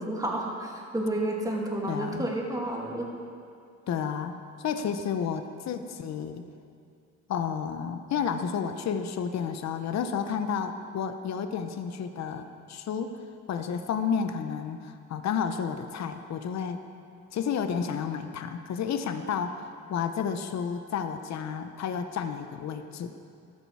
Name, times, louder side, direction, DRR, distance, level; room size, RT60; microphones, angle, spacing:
voice 1, 0.0-3.1, right 1 dB, 10° right, -2 dB, 2.6 m, -31 dB
voice 2, 1.9-2.3 3.9-6.4 7.3-13.2 13.5-16.8 17.3-23.1, left 7 dB, 60° left, 8 dB, 0.9 m, -31 dB
14.0 x 12.5 x 4.8 m, 2.4 s
cardioid pair, 90°, 30 cm